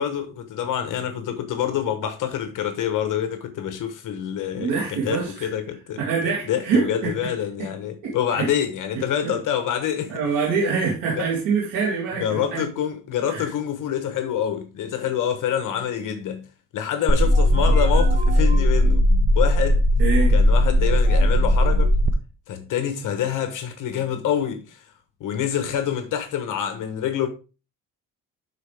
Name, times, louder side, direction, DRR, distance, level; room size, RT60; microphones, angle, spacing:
voice 1, 0.0-6.0 6.5-10.2 11.2-11.3 12.2-16.5 16.7-19.1 19.3-19.8 20.3-21.9 22.5-24.9 25.2-27.3, left 9 dB, 65° left, 1.1 m, -26 dB
voice 2, 4.6-5.5 6.0-7.1 8.0-8.5 9.2-9.4 10.1-12.6 13.3-13.5 20.0-20.3, right 5 dB, 85° right, 3.5 m, -25 dB
sound 1, 17.1-22.1, equal, 25° right, 0.7 m, -17 dB
12.0 x 4.2 x 3.4 m
cardioid pair, 130°, 34 cm